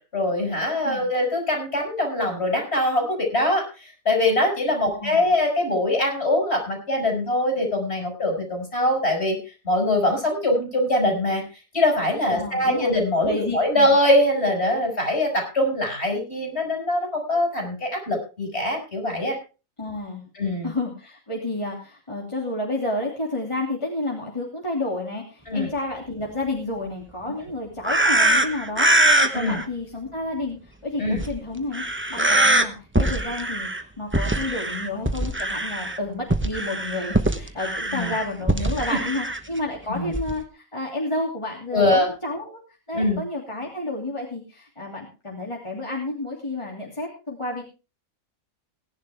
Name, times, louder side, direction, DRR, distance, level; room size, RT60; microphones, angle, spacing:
voice 1, 0.1-9.4 9.6-11.4 11.7-19.4 20.4-20.7 25.5-25.7 29.3-29.6 31.0-31.2 37.9-38.1 39.9-40.1 41.7-42.1 42.9-43.2, left 1 dB, 50° left, 1 dB, 6.8 m, -23 dB
voice 2, 4.8-5.3 12.3-12.9 13.2-13.9 19.8-20.2 20.6-31.8 32.1-33.7 34.0-42.6 42.9-47.6, left 2 dB, 20° left, -2 dB, 2.9 m, -30 dB
sound 1, 27.8-29.6 31.2-31.3 31.7-32.6 32.9-33.8 34.1-36.0 36.3-39.4 40.1-40.4, right 1 dB, 10° right, 1.0 m, -22 dB
18.5 x 11.0 x 3.5 m, 0.32 s
omnidirectional pair, 1.4 m